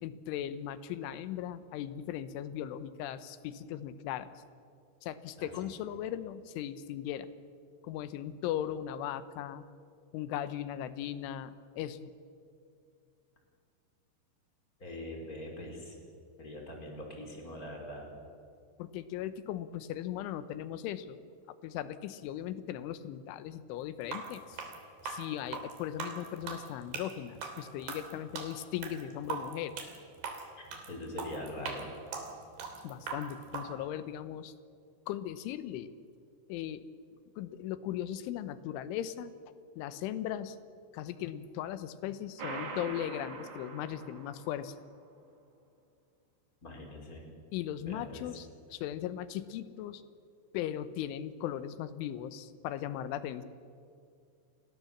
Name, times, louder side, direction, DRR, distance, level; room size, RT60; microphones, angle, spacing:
voice 1, 0.0-4.3 5.0-7.3 7.8-9.7 10.1-12.1 18.8-21.3 21.6-24.7 25.0-29.8 32.8-34.5 35.1-35.9 36.5-36.8 37.4-39.3 39.8-40.6 40.9-44.8 47.5-50.0 50.5-53.4, left 11 dB, 90° left, 13 dB, 3.5 m, -38 dB
voice 2, 5.4-5.7 14.8-16.0 16.4-18.1 30.6-31.9 46.6-47.3 47.8-48.3, left 1 dB, 20° left, 1 dB, 4.6 m, -43 dB
sound 1, 24.0-33.7, right 5 dB, 65° right, 5.0 m, -40 dB
sound 2, 42.4-44.8, right 4 dB, 45° right, 3.7 m, -43 dB
30.0 x 22.5 x 7.3 m, 2.4 s
omnidirectional pair, 5.4 m